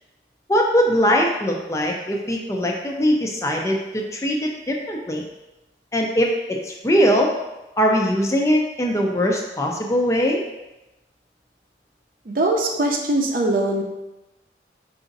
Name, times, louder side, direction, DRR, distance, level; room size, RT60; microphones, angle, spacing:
voice 1, 0.5-5.2 5.9-7.3 7.8-10.4, equal, 15° left, 0 dB, 0.4 m, -21 dB
voice 2, 12.3-13.8, right 2 dB, 50° right, 1 dB, 0.6 m, -21 dB
4.8 x 2.6 x 3.9 m, 1.0 s
head